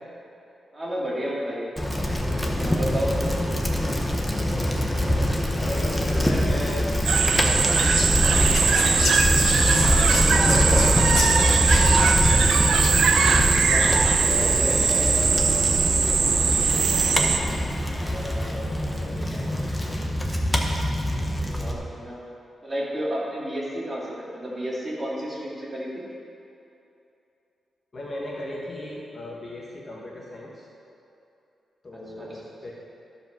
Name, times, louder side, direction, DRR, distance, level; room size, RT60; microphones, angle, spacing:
voice 1, 0.7-1.7 2.6-3.1 10.1-10.8 13.5-14.0 14.3-14.7 21.4-22.2 22.6-26.1 32.2-32.3, equal, 25° right, -7 dB, 2.8 m, -31 dB
Bicycle, 1.8-21.7, equal, 5° left, 1.0 m, -24 dB
voice 2, 5.6-6.9 7.2-8.9 9.6-11.9 14.2-15.6 15.9-17.6 18.0-19.6 19.8-20.0 27.9-30.7 31.8-32.7, left 1 dB, 35° left, -4 dB, 1.6 m, -37 dB
sound 1, 7.0-17.4, right 5 dB, 70° right, 0.6 m, -21 dB
Whispering, 7.9-13.2, left 3 dB, 75° left, 1.3 m, -32 dB
13.5 x 5.2 x 6.1 m, 2.7 s
wide cardioid pair, 120°, 0 cm